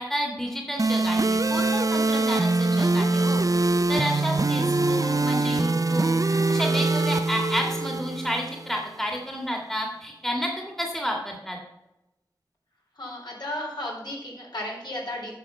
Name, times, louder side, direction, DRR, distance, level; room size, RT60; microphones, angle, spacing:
voice 1, 0.0-3.4 3.9-11.6, equal, 5° left, 0 dB, 2.0 m, -30 dB
sound 1, 0.8-8.8, right 2 dB, 45° right, 0.6 m, -23 dB
voice 2, 13.0-15.3, left 1 dB, 60° left, -3 dB, 3.9 m, -34 dB
9.1 x 6.4 x 5.4 m, 0.92 s
wide cardioid pair, 50°, 8 cm